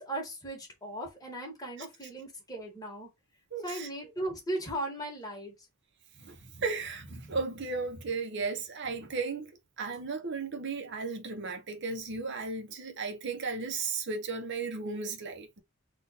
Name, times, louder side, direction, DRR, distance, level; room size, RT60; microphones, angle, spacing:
voice 1, 0.0-3.1 3.6-5.5, right 1 dB, 20° left, 1.6 m, -37 dB
voice 2, 3.5-3.9 6.1-15.6, right 4 dB, 60° right, 0.9 m, -35 dB
3.9 x 2.6 x 4.1 m
head